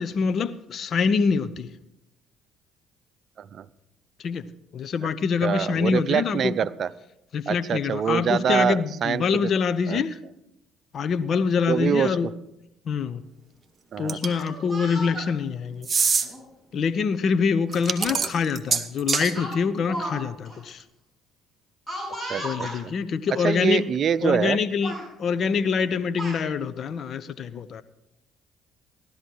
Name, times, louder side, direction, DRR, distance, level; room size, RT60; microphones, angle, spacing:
voice 1, 0.0-1.7 4.2-4.4 4.7-6.6 7.3-10.2 10.9-12.3 12.9-13.2 14.0-16.1 16.7-20.8 22.4-23.8 24.2-24.9 25.2-27.8, left 5 dB, 55° left, 0.8 m, -25 dB
voice 2, 5.4-6.9 7.5-9.4 9.9-10.0 11.7-12.3 13.9-14.2 18.1-18.3 22.3-22.9 23.3-24.6, right 8 dB, 50° right, 0.6 m, -25 dB
sound 1, 14.1-14.5 15.8-16.3 17.7-19.3, right 5 dB, 35° right, 1.2 m, -24 dB
Speech, 14.2-15.3 16.2-16.4 17.7-17.8 18.2-18.4 19.4-20.2 20.5-20.6 21.9-22.8 23.7-23.8 24.2-24.5 24.8-25.1 25.8-26.4, equal, 15° left, 6.6 m, -35 dB
16.0 x 12.0 x 4.7 m
hypercardioid pair, 60°, 0 cm